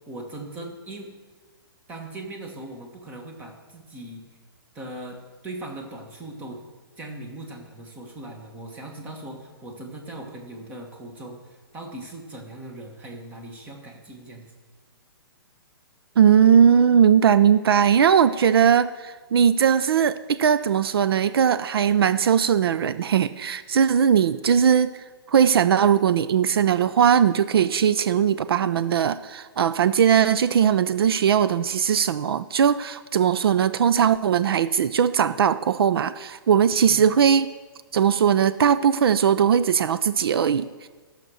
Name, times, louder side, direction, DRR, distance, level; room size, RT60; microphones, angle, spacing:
voice 1, 0.1-1.1 1.9-4.2 4.7-5.2 5.4-6.6 7.0-14.5 36.8-37.1, right 1 dB, 10° right, 2 dB, 1.3 m, -39 dB
voice 2, 16.2-24.9 25.3-37.5 37.9-40.9, right 8 dB, 70° right, 14 dB, 0.5 m, -19 dB
14.0 x 6.7 x 6.2 m, 1.4 s
hypercardioid pair, 165°, 13 cm